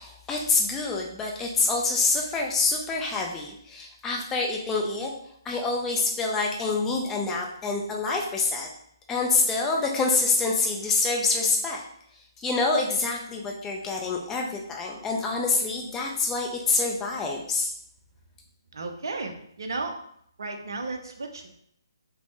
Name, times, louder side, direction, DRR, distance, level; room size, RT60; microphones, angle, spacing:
voice 1, 0.0-5.1 5.5-8.7 9.1-11.8 12.4-17.7, left 3 dB, 10° left, -1 dB, 0.4 m, -26 dB
voice 2, 18.7-20.0 20.4-21.5, right 3 dB, 60° right, 4 dB, 0.5 m, -34 dB
3.4 x 2.0 x 2.7 m, 0.69 s
figure-of-eight pair, 140°, 2 cm